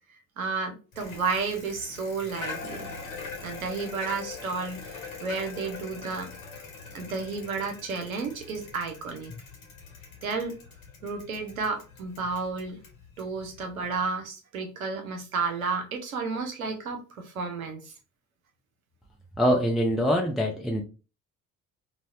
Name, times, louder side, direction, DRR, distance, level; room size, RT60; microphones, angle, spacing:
voice 1, 0.4-2.9 3.4-6.3 6.9-9.3 10.2-10.6 11.0-12.8 13.2-17.9, right 4 dB, 85° right, 0.7 m, -32 dB
Bicycle, 0.9-14.0, left 4 dB, 75° left, 1.1 m, -43 dB
voice 2, 19.4-20.8, equal, ahead, 0.5 m, -24 dB
4.0 x 2.1 x 2.2 m
figure-of-eight pair, 50°, 41 cm